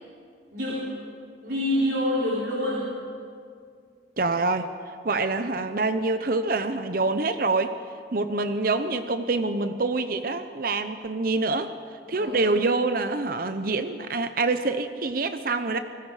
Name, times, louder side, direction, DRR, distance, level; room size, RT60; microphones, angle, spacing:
voice 1, 0.5-1.0 1.4-3.0 12.1-12.6, left 1 dB, 65° right, -5 dB, 4.2 m, -27 dB
voice 2, 4.2-4.7 5.0-7.7 8.1-11.7 12.1-15.8, right 3 dB, 50° right, 9 dB, 0.8 m, -26 dB
29.5 x 20.5 x 5.0 m, 2.2 s
head